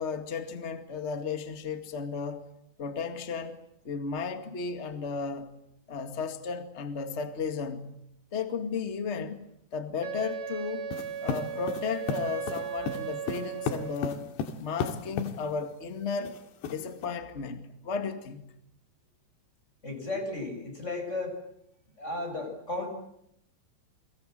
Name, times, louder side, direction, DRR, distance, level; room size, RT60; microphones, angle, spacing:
voice 1, 0.0-2.4 2.8-3.6 3.8-5.6 5.9-7.9 8.3-9.4 9.7-10.9 11.2-14.3 14.6-16.4 16.7-18.5, left 5 dB, 35° left, 1.0 m, -34 dB
Wind instrument woodwind instrument, 10.0-14.1, right 9 dB, 55° right, 6.0 m, -37 dB
sound 1, 10.9-15.4 16.2-17.1, left 6 dB, 85° left, 4.0 m, -34 dB
voice 2, 19.8-21.4 22.0-22.9, left 2 dB, 15° left, 6.3 m, -34 dB
29.5 x 24.5 x 7.7 m
omnidirectional pair, 4.8 m